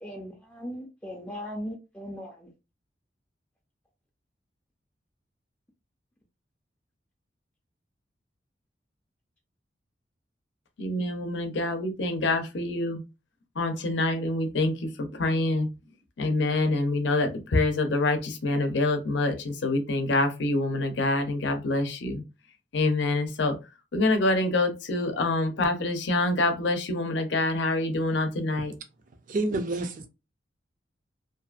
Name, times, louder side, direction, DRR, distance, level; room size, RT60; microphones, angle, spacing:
voice 1, 0.0-2.5, equal, 10° left, 0.4 m, -38 dB
voice 2, 10.8-13.0 13.6-15.7 16.2-22.2 22.7-23.6 23.9-28.7, left 2 dB, 80° left, 0.6 m, -26 dB
voice 3, 29.3-30.1, right 2 dB, 50° right, 0.5 m, -28 dB
2.6 x 2.4 x 2.3 m
head